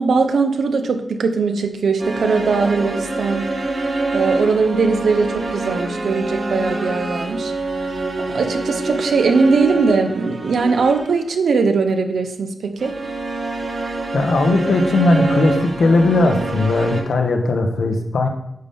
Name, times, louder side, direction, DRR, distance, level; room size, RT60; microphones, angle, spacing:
voice 1, 0.0-3.5 4.1-7.5 8.3-13.0, right 4 dB, 85° right, 7 dB, 0.8 m, -19 dB
sound 1, 2.0-11.3 12.8-17.0, right 2 dB, 50° right, 1.5 m, -25 dB
voice 2, 14.1-18.3, left 2 dB, 80° left, 4 dB, 1.2 m, -17 dB
9.6 x 6.9 x 3.7 m, 0.79 s
wide cardioid pair, 165°, 0 cm